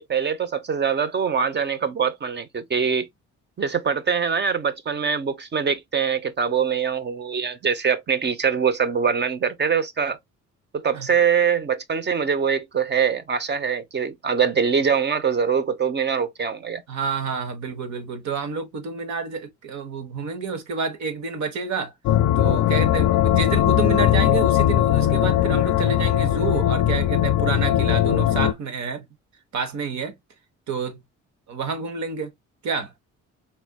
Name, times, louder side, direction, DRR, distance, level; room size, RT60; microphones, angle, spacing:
voice 1, 0.0-3.1 3.6-10.2 10.7-16.8, right 6 dB, 35° right, 0.8 m, -23 dB
voice 2, 16.9-21.9 22.4-29.1 29.5-30.1 30.7-31.0 31.5-32.3 32.6-32.9, right 5 dB, 65° right, 1.3 m, -29 dB
sound 1, 22.1-28.5, left 12 dB, 85° left, 0.5 m, -19 dB
4.3 x 3.3 x 2.2 m
cardioid pair, 90°, 30 cm